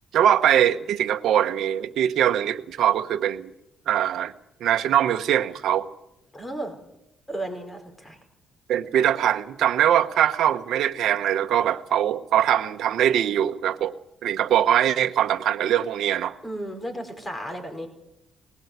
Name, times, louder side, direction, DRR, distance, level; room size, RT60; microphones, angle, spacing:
voice 1, 0.1-3.5 3.9-4.3 4.6-5.9 8.7-13.9 14.2-16.3, right 10 dB, 75° right, 5 dB, 1.0 m, -22 dB
voice 2, 6.3-6.8 7.3-8.2 16.4-17.9, right 1 dB, 15° left, 5 dB, 4.9 m, -34 dB
21.0 x 18.5 x 8.1 m, 0.84 s
cardioid pair, 90°, 0 cm